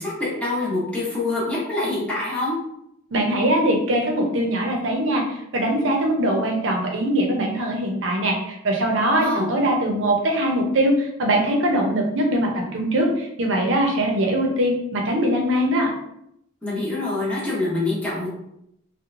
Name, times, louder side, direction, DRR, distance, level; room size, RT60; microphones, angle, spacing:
voice 1, 0.0-2.6 9.2-9.5 16.6-18.3, left 2 dB, 5° left, -8 dB, 0.8 m, -25 dB
voice 2, 3.1-15.9, right 1 dB, 70° right, 1 dB, 0.6 m, -22 dB
2.9 x 2.1 x 2.5 m, 0.76 s
head